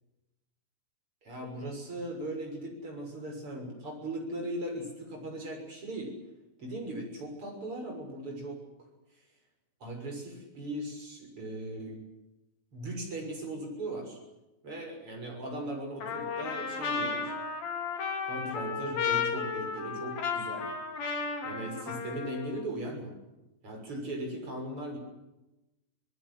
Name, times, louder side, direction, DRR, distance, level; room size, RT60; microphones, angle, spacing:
voice 1, 1.2-6.2 6.6-8.6 9.8-12.0 12.7-14.2 14.6-17.3 18.3-20.7 21.4-23.2 23.6-25.0, right 1 dB, 30° right, 3 dB, 7.2 m, -38 dB
Trumpet, 16.0-22.6, left 5 dB, 55° left, 4.9 m, -33 dB
27.0 x 19.0 x 8.0 m, 0.98 s
omnidirectional pair, 5.1 m